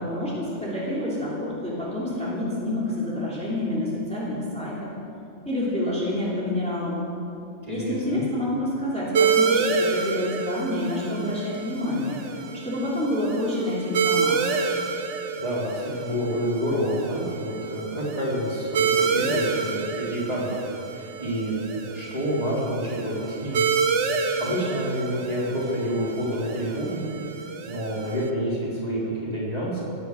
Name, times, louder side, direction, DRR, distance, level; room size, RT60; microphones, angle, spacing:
voice 1, 0.0-4.9 5.4-7.0 7.7-12.2 12.5-14.7, left 1 dB, 5° left, -8 dB, 3.1 m, -28 dB
voice 2, 7.6-8.2 15.4-20.6 20.9-23.8 24.4-27.0 27.4-29.8, equal, 30° right, -7 dB, 4.0 m, -28 dB
sound 1, 9.1-28.3, right 5 dB, 75° right, 1.2 m, -28 dB
18.0 x 9.3 x 6.4 m, 2.7 s
omnidirectional pair, 1.3 m